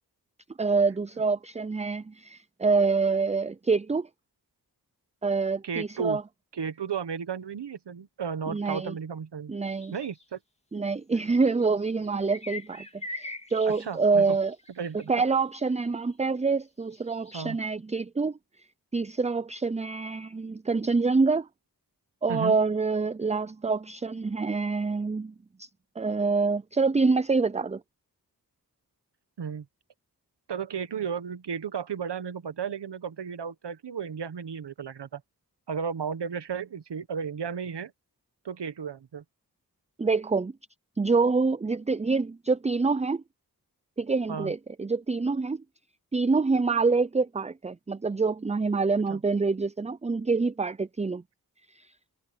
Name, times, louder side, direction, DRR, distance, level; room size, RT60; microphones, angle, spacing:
voice 1, 0.6-4.1 5.2-6.2 8.5-8.9 9.5-10.0 10.7-12.8 13.1-14.5 15.1-18.4 18.9-21.5 22.2-25.3 25.6-25.7 26.0-27.8 40.0-40.5 41.0-43.2 44.0-45.6 46.1-51.2 51.8-51.9, right 4 dB, 15° right, 0.5 m, -26 dB
voice 2, 5.6-6.2 6.5-9.5 9.9-10.4 13.7-14.4 14.8-15.1 17.3-17.6 22.3-22.6 29.4-29.6 30.5-35.2 35.7-37.9 38.4-39.2 44.3-44.5 49.1-49.2, right 6 dB, 85° right, 1.3 m, -34 dB
sound 1, 9.6-10.2 11.2-16.1 16.8-17.5, left 2 dB, 15° left, 2.1 m, -43 dB
cardioid pair, 45°, 40 cm